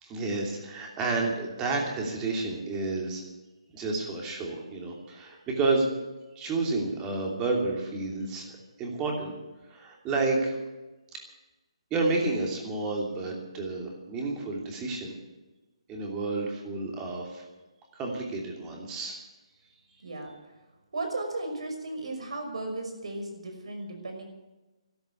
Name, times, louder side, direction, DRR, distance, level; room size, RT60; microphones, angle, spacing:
voice 1, 0.0-3.2 3.7-5.9 6.3-8.5 8.8-9.3 9.7-10.6 11.1-11.2 11.9-15.1 15.9-17.4 18.0-19.2, right 3 dB, 15° right, 1 dB, 2.9 m, -30 dB
voice 2, 20.0-20.3 20.9-24.2, right 2 dB, 70° right, 4 dB, 5.8 m, -35 dB
13.5 x 12.5 x 8.4 m, 1.1 s
hypercardioid pair, 165°, 3 cm